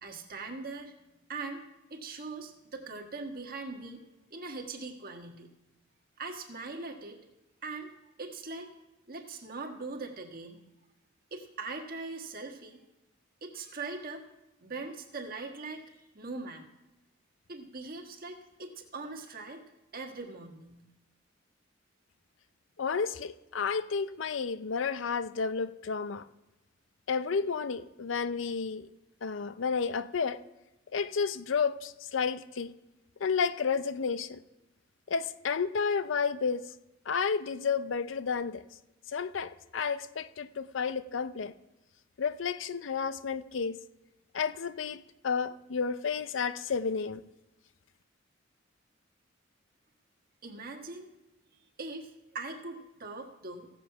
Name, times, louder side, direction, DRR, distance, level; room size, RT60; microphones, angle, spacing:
voice 1, 0.0-0.9 1.3-1.6 1.9-4.0 4.3-5.5 6.2-7.2 7.6-7.9 8.2-8.7 9.1-10.6 11.3-12.8 13.4-14.2 14.6-16.6 17.5-19.6 19.9-20.8 50.4-51.1 51.8-53.7, right 3 dB, 50° right, 3 dB, 1.5 m, -41 dB
voice 2, 22.8-26.3 27.1-28.9 29.2-30.4 30.9-32.7 33.2-34.4 35.1-36.7 37.1-38.6 39.1-41.5 42.2-43.8 44.3-47.2, left 5 dB, 70° left, 14 dB, 0.5 m, -31 dB
15.5 x 7.5 x 5.6 m, 0.98 s
head